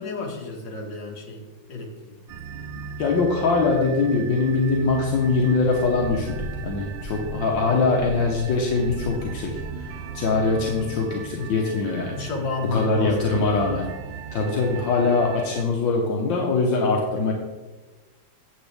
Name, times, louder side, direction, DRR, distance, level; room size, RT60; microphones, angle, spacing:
voice 1, 0.0-1.9 11.4-11.6 12.1-13.5, left 3 dB, 70° left, -1 dB, 2.3 m, -31 dB
sound 1, 2.3-15.6, right 5 dB, 85° right, 1.4 m, -37 dB
voice 2, 2.7-9.9 10.1-12.2 12.7-13.9 14.3-17.3, left 3 dB, 85° left, -1 dB, 1.8 m, -23 dB
sound 2, 5.7-10.8, right 1 dB, 45° left, 3.5 m, -39 dB
9.2 x 7.6 x 3.4 m, 1.2 s
omnidirectional pair, 2.0 m